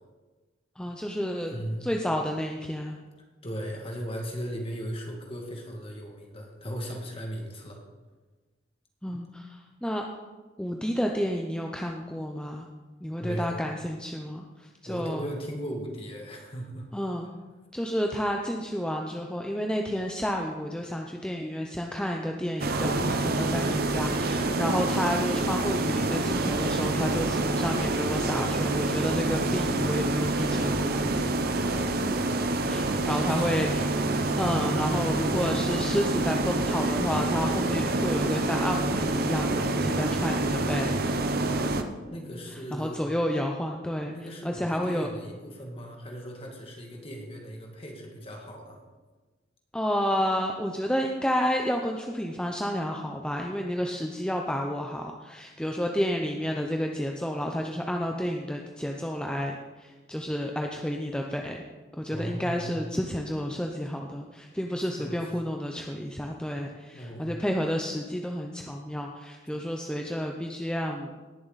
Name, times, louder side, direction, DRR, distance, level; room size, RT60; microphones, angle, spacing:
voice 1, 0.8-3.0 9.0-10.0 10.6-12.7 13.0-15.3 16.9-17.3 17.7-31.1 32.7-33.9 34.4-41.0 42.5-44.1 44.4-45.1 49.7-61.6 62.0-71.2, equal, 5° left, 2 dB, 0.6 m, -30 dB
voice 2, 1.3-1.9 3.4-7.8 13.2-13.6 14.8-16.9 33.3-33.5 42.0-43.0 44.1-48.8 62.1-62.8 64.8-65.2 66.9-67.3, equal, 30° left, 1 dB, 2.1 m, -37 dB
sound 1, 22.6-41.8, right 2 dB, 55° right, 0.8 m, -27 dB
18.5 x 7.1 x 4.1 m, 1.3 s
head